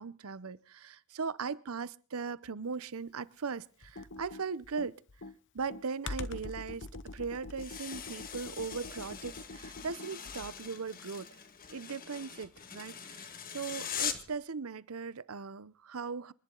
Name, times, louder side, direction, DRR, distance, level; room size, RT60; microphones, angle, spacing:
voice 1, 0.0-5.0 5.5-6.9 7.1-11.4 11.7-16.3, right 5 dB, 70° right, 0.7 m, -39 dB
Computer keyboard, 3.8-10.7, left 3 dB, 55° left, 0.9 m, -44 dB
sound 1, 7.6-14.4, left 8 dB, 40° left, 1.7 m, -42 dB
27.5 x 11.0 x 3.9 m
head